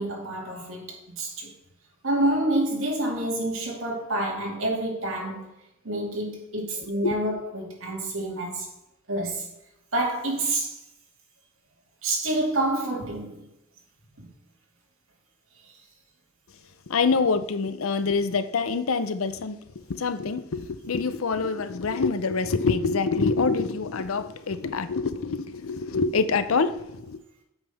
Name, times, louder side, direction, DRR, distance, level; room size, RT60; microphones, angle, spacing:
voice 1, 0.0-1.5 2.0-5.6 5.8-8.7 9.1-9.5 9.9-10.8 12.0-13.5 14.2-14.3 15.6-15.8, right 1 dB, 75° right, 2.3 m, -28 dB
voice 2, 16.9-27.2, left 4 dB, 85° left, 0.6 m, -26 dB
8.1 x 5.5 x 3.5 m
head